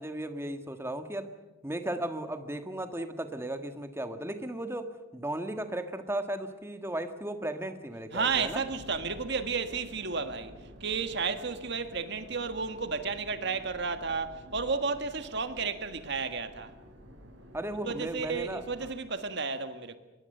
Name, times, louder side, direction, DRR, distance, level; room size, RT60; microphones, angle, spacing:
voice 1, 0.0-1.3 1.6-8.6 17.5-18.6, right 1 dB, 15° right, 1.6 m, -35 dB
voice 2, 8.1-10.5 10.8-16.7 17.8-20.0, right 5 dB, 60° right, 1.8 m, -32 dB
sound 1, 8.1-18.9, equal, 90° right, 6.2 m, -51 dB
24.5 x 21.5 x 6.8 m
head